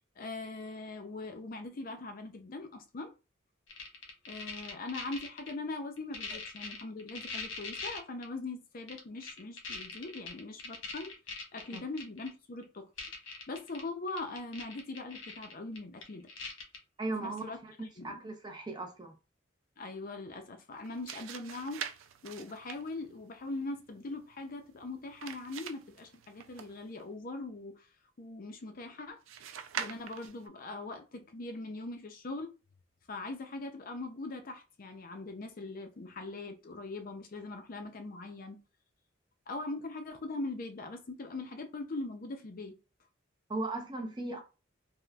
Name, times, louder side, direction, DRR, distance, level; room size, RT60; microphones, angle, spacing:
voice 1, 0.2-3.1 4.3-11.1 11.5-12.9 13.5-16.3 17.2-18.2 19.8-21.8 22.2-27.9 28.2-29.2 29.8-32.5 33.1-38.6 39.5-42.8, left 2 dB, 45° left, 0.5 m, -41 dB
sound 1, 3.7-5.5 6.0-8.2 8.9-12.3 12.6-12.7 13.0-13.8 14.1-16.8 17.4-17.5, left 4 dB, 75° left, 1.0 m, -41 dB
voice 2, 17.0-17.7 18.0-19.1 43.5-44.4, right 2 dB, 20° right, 0.6 m, -37 dB
sound 2, 20.7-27.1 29.3-30.5, right 8 dB, 85° right, 0.4 m, -45 dB
3.4 x 2.5 x 2.3 m
head